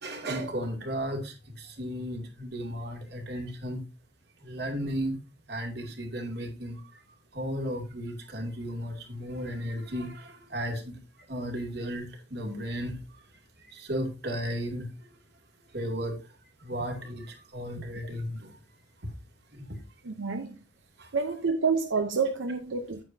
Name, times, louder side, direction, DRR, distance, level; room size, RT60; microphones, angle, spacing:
voice 1, 0.0-3.8 4.4-5.2 5.5-7.0 7.3-11.0 11.3-13.0 13.6-15.1 15.7-16.2 16.6-18.6 19.0-19.1 19.5-19.8 21.0-21.1, equal, 55° right, 2.5 m, -35 dB
voice 2, 20.0-20.6 21.1-23.0, right 4 dB, 90° right, 0.8 m, -28 dB
9.1 x 9.0 x 2.7 m
head